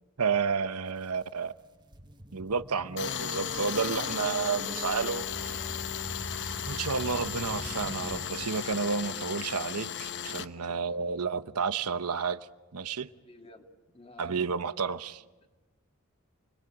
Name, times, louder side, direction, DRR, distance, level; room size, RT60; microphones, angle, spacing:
voice 1, 0.2-1.5 2.3-5.6 6.6-12.4 12.7-13.1 14.2-15.2, right 5 dB, 85° right, 12 dB, 1.0 m, -31 dB
sound 1, 0.9-1.0 1.5-9.2, equal, 20° right, 1.4 m, -44 dB
Tools, 3.0-10.5, left 8 dB, 55° left, 1.0 m, -35 dB
voice 2, 10.5-11.1 13.2-13.7 13.9-14.5 15.2-15.5, left 2 dB, 25° left, 4 dB, 2.5 m, -53 dB
28.5 x 21.5 x 8.7 m, 1.2 s
head